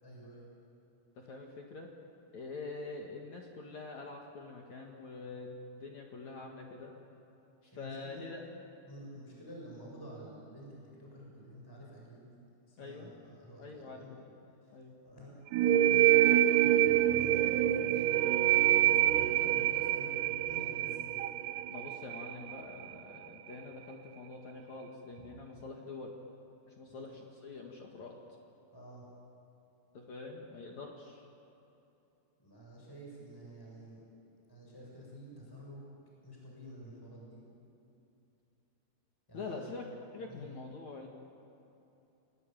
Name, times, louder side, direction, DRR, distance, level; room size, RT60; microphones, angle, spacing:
voice 1, 0.0-0.5 7.7-8.3 8.9-12.3 12.7-14.1 14.6-14.8 15.0-15.3 15.6-21.2 26.9-27.0 28.7-29.1 32.4-34.0 34.5-35.8 36.2-37.4 39.3-39.7 40.3-40.4, equal, 5° left, -3 dB, 6.7 m, -49 dB
voice 2, 1.1-1.9 2.3-6.9 7.6-8.4 12.8-13.1 13.6-14.3 14.7-15.0 21.7-26.2 26.7-28.2 29.9-31.3 39.3-39.8 40.1-41.1, left 3 dB, 50° left, 0 dB, 2.8 m, -45 dB
sound 1, 15.5-22.9, right 12 dB, 85° right, 1.8 m, -26 dB
29.0 x 20.0 x 9.2 m, 2.9 s
omnidirectional pair, 4.6 m